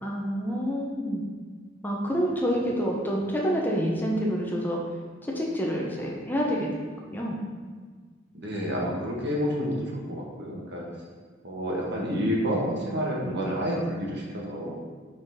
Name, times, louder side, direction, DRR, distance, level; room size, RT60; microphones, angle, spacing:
voice 1, 0.0-1.2 1.8-4.8 5.3-6.7 7.1-7.4, equal, 10° left, -3 dB, 0.8 m, -27 dB
voice 2, 8.3-10.8 11.4-14.8, equal, 60° right, -3 dB, 1.4 m, -29 dB
5.7 x 4.1 x 5.6 m, 1.5 s
head